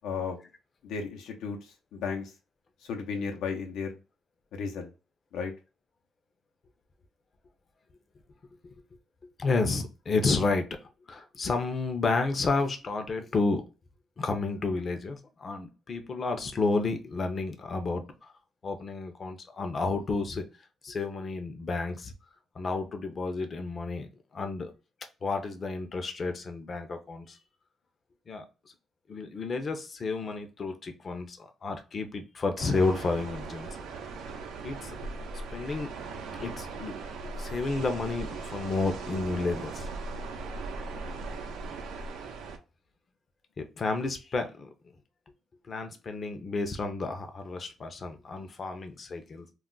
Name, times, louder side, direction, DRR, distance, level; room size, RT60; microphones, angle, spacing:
voice 1, 0.0-0.5 0.8-2.3 2.8-3.9 4.5-4.9 5.3-5.5, left 5 dB, 85° left, 0.7 m, -34 dB
voice 2, 9.4-10.7 11.1-13.6 14.2-18.3 18.6-20.5 20.8-22.1 22.5-24.7 25.2-27.4 28.3-28.4 29.1-33.7 34.6-35.0 35.5-36.0 36.4-36.9 37.2-39.9 43.6-44.7 45.7-49.5, left 3 dB, 40° left, 0.6 m, -31 dB
sound 1, 32.6-42.6, right 3 dB, 85° right, 0.6 m, -39 dB
2.4 x 2.1 x 3.8 m
cardioid pair, 90°, 0 cm